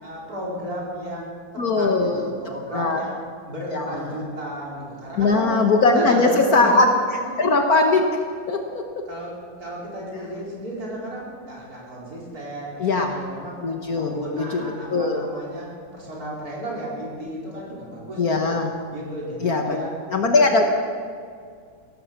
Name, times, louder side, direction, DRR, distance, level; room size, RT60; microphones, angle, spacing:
voice 1, 0.0-1.5 1.7-3.2 3.5-5.5 5.9-6.8 7.2-7.3 9.1-9.3 9.6-13.6 14.0-18.5 18.9-19.9, equal, 50° right, -5 dB, 4.9 m, -33 dB
voice 2, 1.6-2.3 2.7-3.0 3.7-4.2 5.2-6.9 7.4-8.0 8.5-8.8 10.1-10.3 12.8-13.2 13.6-14.6 14.9-15.3 18.2-18.7 19.4-19.8 20.1-20.6, left 3 dB, 55° left, 3 dB, 1.5 m, -20 dB
16.5 x 14.0 x 5.9 m, 2.1 s
omnidirectional pair, 2.1 m